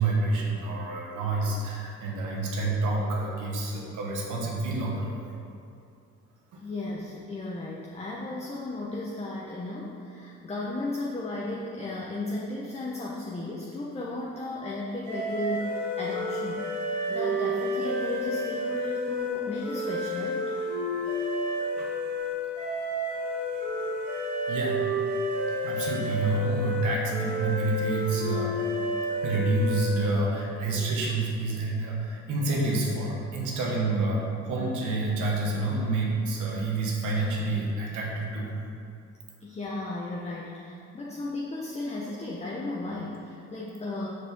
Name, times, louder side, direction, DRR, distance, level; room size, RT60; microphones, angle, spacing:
voice 1, 0.0-5.2 6.5-6.6 21.8-21.9 24.5-24.8 25.6-28.6 29.2-38.5, right 2 dB, 90° right, -3 dB, 1.3 m, -28 dB
voice 2, 6.6-20.5 39.4-44.1, left 2 dB, 20° left, -3 dB, 0.8 m, -35 dB
sound 1, 15.1-30.1, equal, 70° right, 1.7 m, -30 dB
6.4 x 4.8 x 5.2 m, 2.5 s
cardioid pair, 90°, 30 cm